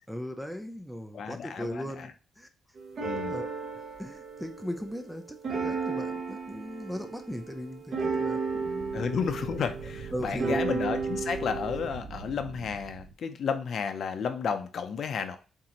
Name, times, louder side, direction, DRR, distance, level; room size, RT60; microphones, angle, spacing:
voice 1, 0.1-2.5 3.3-3.5 4.0-9.0 10.1-10.6, equal, ahead, 7 dB, 0.4 m, -38 dB
voice 2, 1.1-2.1 3.0-3.4 8.9-15.4, left 6 dB, 50° left, 8 dB, 0.5 m, -32 dB
sound 1, 2.8-11.9, right 4 dB, 45° right, 0.9 m, -34 dB
sound 2, 8.3-13.1, right 5 dB, 70° right, 0.7 m, -44 dB
4.2 x 3.7 x 2.9 m, 0.34 s
cardioid pair, 180°, 0 cm